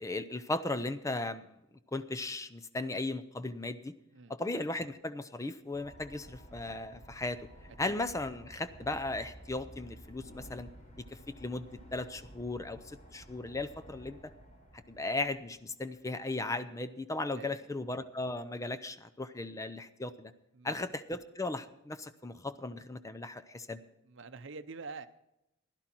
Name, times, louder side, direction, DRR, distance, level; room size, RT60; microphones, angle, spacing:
voice 1, 0.0-1.4 1.9-3.9 4.3-7.5 7.8-10.7 11.0-14.2 14.9-20.3 20.6-23.8, left 2 dB, 15° left, 12 dB, 0.5 m, -37 dB
sound 1, 5.7-15.9, right 1 dB, 35° left, 3.5 m, -53 dB
voice 2, 24.0-25.1, right 4 dB, 65° right, 10 dB, 0.7 m, -46 dB
16.0 x 11.5 x 4.5 m, 0.87 s
head